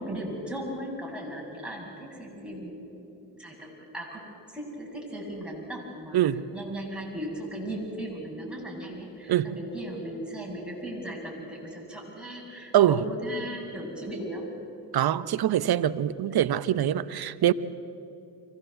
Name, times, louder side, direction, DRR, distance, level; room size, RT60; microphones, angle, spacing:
voice 1, 0.0-2.9 3.3-4.2 4.5-6.2 6.5-14.5, right 1 dB, ahead, -2 dB, 7.7 m, -37 dB
voice 2, 14.9-17.5, right 11 dB, 50° right, 16 dB, 0.9 m, -23 dB
24.5 x 17.0 x 8.1 m, 2.7 s
hypercardioid pair, 55°, 47 cm